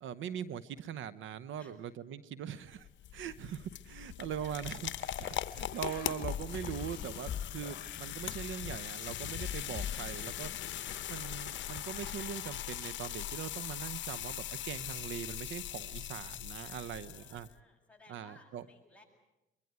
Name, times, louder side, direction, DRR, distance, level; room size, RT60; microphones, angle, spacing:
voice 1, 0.0-10.5 11.1-17.5 18.1-18.7, right 9 dB, 75° right, 16 dB, 0.9 m, -41 dB
sound 1, 2.7-17.5, left 12 dB, 65° left, 0.9 m, -40 dB
sound 2, 4.8-11.3, left 8 dB, 50° left, 1.6 m, -44 dB
voice 2, 16.6-19.0, left 2 dB, 5° left, 0 dB, 7.7 m, -60 dB
23.5 x 23.5 x 9.4 m, 0.95 s
cardioid pair, 90°, 20 cm